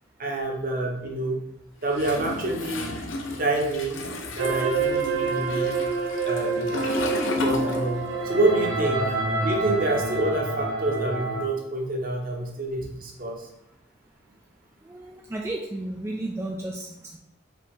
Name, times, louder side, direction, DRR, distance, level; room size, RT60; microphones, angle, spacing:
voice 1, 0.2-1.4 1.8-3.0 3.4-4.0 4.3-5.7 6.2-6.9 7.3-9.0 9.4-13.5, right 2 dB, 45° right, 0 dB, 1.0 m, -27 dB
Toilet flush, 1.9-8.4 8.6-10.2, left 2 dB, 80° left, 0.7 m, -33 dB
sound 1, 4.4-11.5, right 3 dB, 85° right, 0.7 m, -27 dB
voice 2, 14.8-17.2, right 1 dB, 15° right, -1 dB, 0.3 m, -33 dB
4.9 x 2.8 x 3.7 m, 0.88 s
head